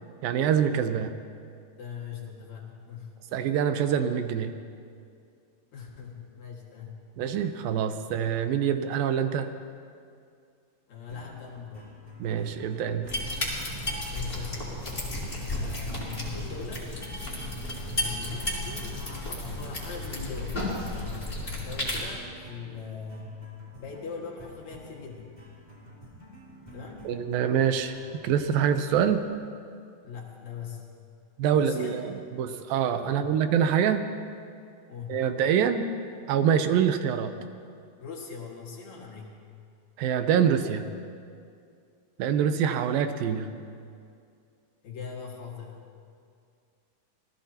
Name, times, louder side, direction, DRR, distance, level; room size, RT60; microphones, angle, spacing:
voice 1, 0.2-1.1 3.3-4.5 7.2-9.5 12.2-13.1 27.1-28.0 28.2-29.2 31.4-32.1 32.4-34.1 35.1-35.9 36.3-37.3 40.0-40.9 42.2-43.5, right 8 dB, 85° right, 9 dB, 2.6 m, -25 dB
voice 2, 1.8-3.1 5.7-7.0 10.9-11.9 14.1-14.7 15.5-16.9 17.9-20.7 20.9-23.4 23.8-25.3 26.7-27.1 30.0-30.9 31.5-32.0 33.0-33.3 34.9-35.2 38.0-39.3 44.8-45.8, left 5 dB, 55° left, -2 dB, 3.0 m, -41 dB
sound 1, 11.1-29.2, equal, 15° right, 2.8 m, -50 dB
sound 2, 13.1-22.0, left 1 dB, 15° left, 3.3 m, -33 dB
27.0 x 18.0 x 2.9 m, 2.3 s
omnidirectional pair, 4.0 m